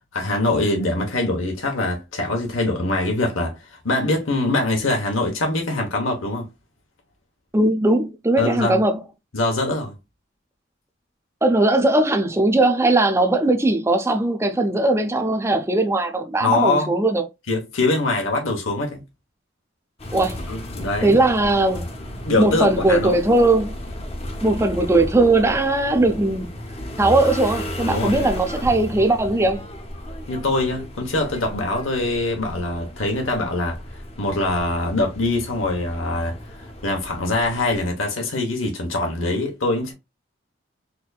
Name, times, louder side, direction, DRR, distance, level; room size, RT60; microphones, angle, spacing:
voice 1, 0.1-6.5 8.4-8.8 9.3-9.9 16.4-16.9 17.5-19.0 20.5-21.2 22.2-23.2 27.9-28.3 30.3-33.8 34.2-39.9, left 2 dB, 90° left, 1.0 m, -23 dB
voice 2, 7.5-9.0 11.4-17.2 20.1-20.4 21.0-21.9 22.4-23.8 24.4-26.5 27.0-29.6, right 2 dB, 15° right, 0.5 m, -19 dB
sound 1, 20.0-37.9, left 1 dB, 30° left, 0.7 m, -34 dB
4.3 x 2.7 x 2.3 m
head